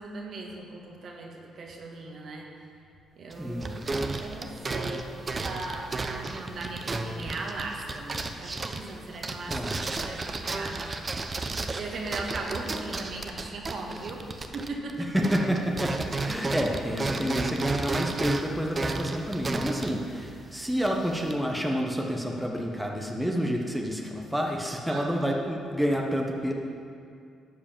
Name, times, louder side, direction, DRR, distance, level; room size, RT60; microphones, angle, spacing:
voice 1, 0.0-2.5 3.2-5.1 5.4-10.8 11.5-14.2 14.5-15.1 24.8-25.4, right 3 dB, 60° right, 0 dB, 1.6 m, -38 dB
sound 1, 3.3-14.9 15.2-21.3, right 3 dB, 30° right, 0.7 m, -33 dB
voice 2, 3.4-3.9 9.5-10.0 15.0-26.5, equal, 5° right, 0 dB, 1.0 m, -29 dB
12.0 x 4.9 x 7.4 m, 2.4 s
cardioid pair, 90°, 0 cm